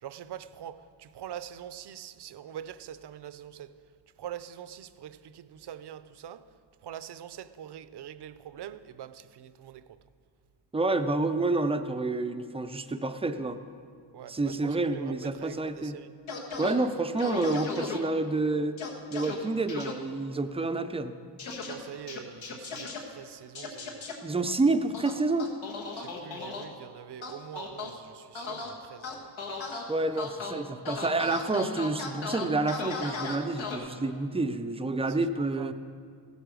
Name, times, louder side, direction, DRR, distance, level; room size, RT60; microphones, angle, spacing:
voice 1, 0.0-3.7 4.2-6.4 6.8-10.0 14.1-16.1 20.5-20.7 21.7-24.0 25.9-29.5 35.1-35.2 35.6-35.7, right 10 dB, 60° right, 0.6 m, -44 dB
voice 2, 10.7-13.6 14.3-16.0 16.6-18.8 19.1-21.1 24.2-25.5 29.9-35.7, right 2 dB, 15° right, 0.4 m, -28 dB
sound 1, 16.3-16.7 17.2-18.0 18.8-19.3 19.7-19.9 21.4-21.7 22.1-23.0 23.5-24.1 24.9-26.6 27.2-27.9 28.3-28.7 29.0-29.8 30.2-30.5 30.9-33.8, left 4 dB, 80° left, 1.6 m, -36 dB
15.5 x 8.2 x 6.2 m
wide cardioid pair, 140°, 45 cm